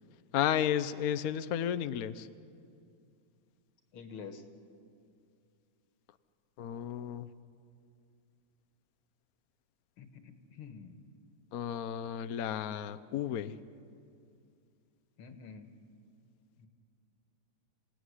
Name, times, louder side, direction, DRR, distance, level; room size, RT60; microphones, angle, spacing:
voice 1, 0.3-2.3 6.6-7.3 11.5-13.6, left 10 dB, 60° left, 12 dB, 1.0 m, -33 dB
voice 2, 3.9-4.4 10.0-11.0 15.2-15.7 16.6-16.7, left 5 dB, 85° left, 7 dB, 2.4 m, -48 dB
28.0 x 17.5 x 9.7 m, 2.4 s
omnidirectional pair, 2.3 m